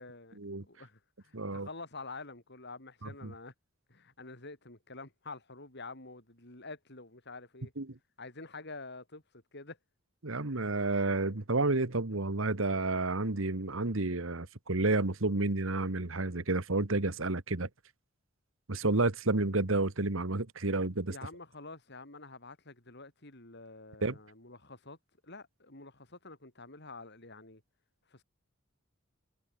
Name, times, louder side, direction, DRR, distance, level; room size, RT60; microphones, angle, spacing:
voice 1, 0.0-3.5 3.9-7.7 8.2-9.2 9.5-9.8 21.1-25.0 25.2-27.6 28.1-28.2, left 3 dB, 55° left, 5.7 m, -48 dB
voice 2, 1.3-1.7 3.2-3.3 7.8-7.9 10.2-17.7 18.7-21.1 24.0-24.2, right 2 dB, 65° right, 1.6 m, -30 dB
head